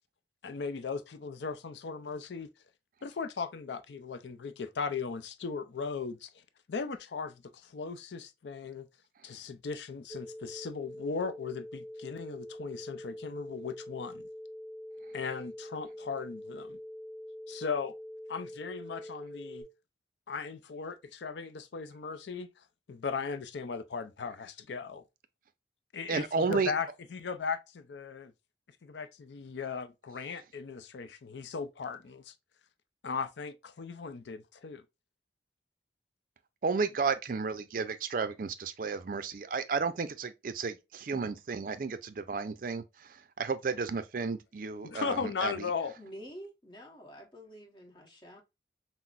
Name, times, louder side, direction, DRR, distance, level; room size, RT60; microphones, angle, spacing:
voice 1, 0.4-2.5 3.0-6.4 6.7-8.9 9.2-14.3 15.1-16.8 17.5-17.9 18.3-19.6 20.3-22.5 22.9-25.0 25.9-28.3 28.8-32.3 33.0-34.8 44.8-45.9, left 5 dB, 75° left, 0.5 m, -37 dB
sound 1, 10.1-19.6, left 1 dB, 5° left, 0.7 m, -45 dB
voice 2, 26.1-26.7 36.6-42.8 43.4-45.5, right 5 dB, 50° right, 0.4 m, -32 dB
voice 3, 46.0-48.4, equal, 25° left, 1.1 m, -48 dB
5.8 x 2.0 x 2.4 m
head